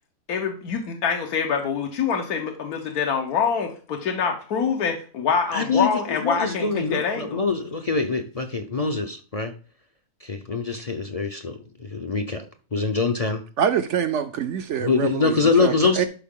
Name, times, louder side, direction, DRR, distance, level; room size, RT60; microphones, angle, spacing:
voice 1, 0.3-7.4, left 6 dB, 90° left, 1.5 m, -25 dB
voice 2, 5.5-5.9 6.2-9.5 10.2-11.5 11.8-12.4 12.7-13.4 14.8-16.0, left 4 dB, 50° left, 0.4 m, -24 dB
voice 3, 13.6-15.3 15.6-16.0, right 8 dB, 65° right, 0.8 m, -25 dB
11.5 x 4.7 x 3.7 m
omnidirectional pair, 1.5 m